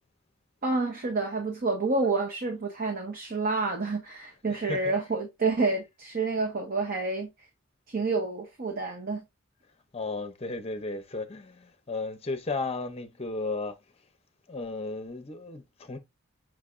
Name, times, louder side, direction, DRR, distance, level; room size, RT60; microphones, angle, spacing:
voice 1, 0.6-7.3 7.9-9.2, right 3 dB, 45° right, 0.9 m, -29 dB
voice 2, 4.5-4.9 9.9-13.8 14.5-16.0, left 3 dB, 30° left, 0.7 m, -34 dB
6.1 x 3.2 x 2.4 m
head